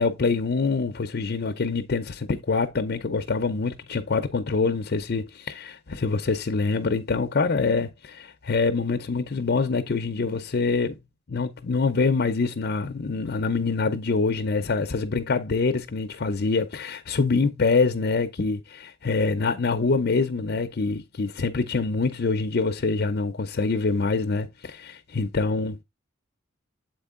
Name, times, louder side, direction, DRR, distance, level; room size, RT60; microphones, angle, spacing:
voice 1, 0.0-11.0 11.3-25.8, left 4 dB, 50° left, 0.6 m, -25 dB
7.8 x 4.5 x 3.7 m
head